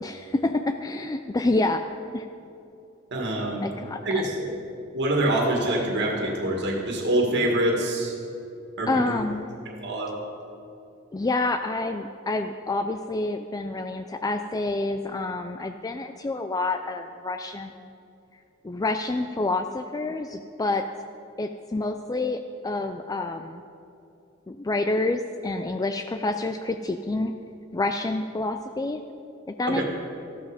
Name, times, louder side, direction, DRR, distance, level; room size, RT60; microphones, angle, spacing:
voice 1, 0.0-1.8 2.1-2.3 3.6-4.2 8.9-9.5 11.1-17.9 18.6-20.8 21.4-23.6 24.5-27.3 27.7-29.0 29.5-29.8, left 2 dB, 20° left, 7 dB, 0.4 m, -28 dB
voice 2, 3.1-3.7 4.0-4.5 4.9-8.2 8.8-9.2 9.8-10.2 29.7-29.8, right 1 dB, 55° right, 0 dB, 2.0 m, -25 dB
13.5 x 12.5 x 5.0 m, 2.7 s
head